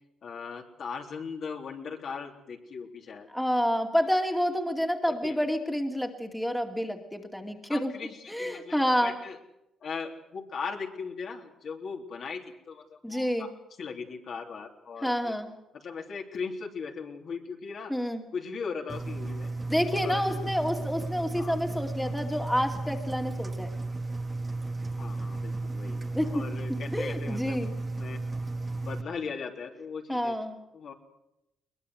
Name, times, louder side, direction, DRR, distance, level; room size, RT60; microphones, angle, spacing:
voice 1, 0.2-3.3 5.2-5.4 7.7-9.4 9.8-13.5 13.8-15.3 15.7-17.9 18.3-19.5 19.9-20.9 21.3-21.6 25.0-26.0 26.3-27.6 28.0-28.2 28.8-30.3 30.7-30.9, left 5 dB, 55° left, 1 dB, 3.5 m, -38 dB
voice 2, 3.3-7.9 8.3-9.2 13.0-13.5 15.0-15.5 17.9-18.2 19.7-23.7 25.9-26.4 26.7-27.7 30.1-30.6, equal, 5° left, 2 dB, 2.6 m, -29 dB
Engine, 18.9-29.0, right 2 dB, 20° right, 1.7 m, -34 dB
22.0 x 20.5 x 7.9 m, 0.88 s
cardioid pair, 105°, 0 cm